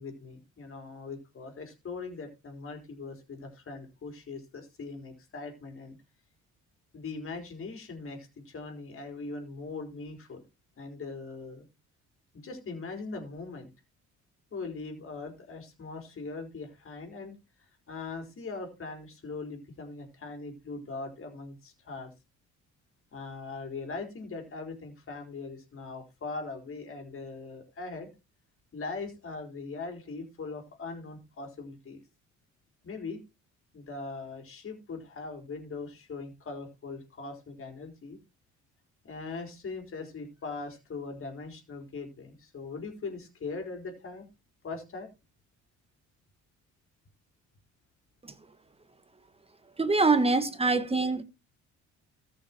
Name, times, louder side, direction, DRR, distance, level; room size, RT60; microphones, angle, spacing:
voice 1, 0.0-6.0 6.9-10.4 10.8-11.6 12.3-13.7 14.5-22.1 23.1-28.1 28.7-32.0 32.8-33.2 33.7-38.2 39.0-44.3 44.6-45.1, left 3 dB, 45° left, 4.5 m, -40 dB
voice 2, 49.8-51.2, right 3 dB, 20° right, 1.4 m, -24 dB
14.0 x 6.6 x 4.5 m
cardioid pair, 95°, 31 cm